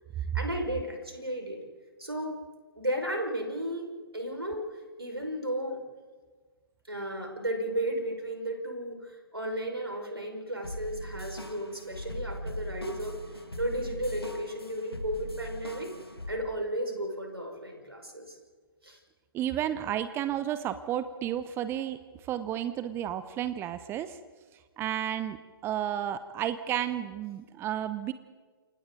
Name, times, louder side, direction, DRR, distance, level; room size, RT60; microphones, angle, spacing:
voice 1, 0.3-1.6 2.0-2.4 2.8-3.9 4.1-4.7 5.0-5.8 6.9-13.2 13.6-15.9 16.3-18.4 18.8-19.0, right 1 dB, 85° right, 2 dB, 5.3 m, -34 dB
sound 1, 10.6-16.4, equal, 90° left, 1.9 m, -40 dB
voice 2, 19.3-24.2 24.8-25.4 25.6-28.1, right 11 dB, 20° right, 12 dB, 0.8 m, -32 dB
29.0 x 26.5 x 3.9 m, 1.4 s
figure-of-eight pair, 120°, 12 cm